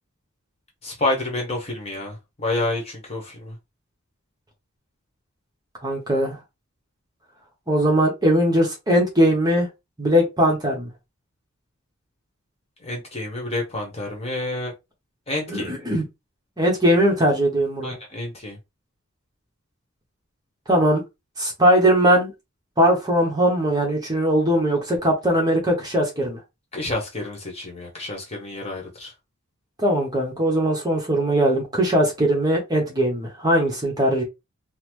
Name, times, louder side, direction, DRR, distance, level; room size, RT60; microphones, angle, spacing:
voice 1, 0.8-3.6 12.8-14.7 15.3-15.7 17.8-18.6 26.7-29.1, left 2 dB, 30° left, 1.0 m, -29 dB
voice 2, 5.8-6.4 7.7-9.7 10.0-10.9 15.5-16.0 16.6-17.9 20.7-21.0 21.4-22.3 22.8-26.4 29.8-34.2, equal, 20° right, 0.9 m, -20 dB
3.8 x 2.0 x 3.1 m
head